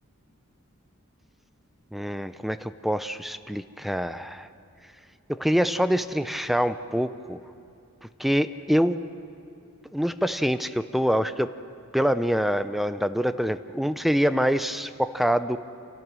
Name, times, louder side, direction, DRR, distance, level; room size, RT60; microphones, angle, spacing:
voice 1, 1.9-4.5 5.3-7.4 8.2-9.0 9.9-11.5 11.9-15.6, equal, ahead, 12 dB, 0.4 m, -25 dB
27.5 x 17.5 x 6.2 m, 2.6 s
head